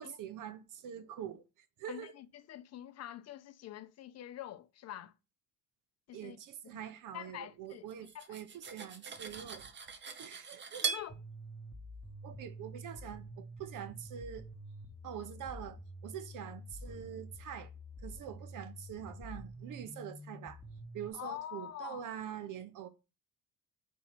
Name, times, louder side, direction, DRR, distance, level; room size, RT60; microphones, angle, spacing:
voice 1, 0.0-1.4 1.8-2.2 6.1-9.6 10.2-10.9 12.2-14.5 15.0-17.7 18.0-20.6 20.9-22.9, right 9 dB, 65° right, 0.9 m, -45 dB
voice 2, 1.9-5.1 6.1-6.4 7.1-7.8 8.1-8.3 10.8-11.2 21.1-22.0, left 11 dB, 50° left, 0.5 m, -45 dB
Cutlery silverware, 7.9-11.1, right 5 dB, 30° right, 0.7 m, -40 dB
sound 1, 11.1-21.1, equal, ahead, 0.9 m, -48 dB
4.7 x 4.2 x 5.7 m
cardioid pair, 175°, 34 cm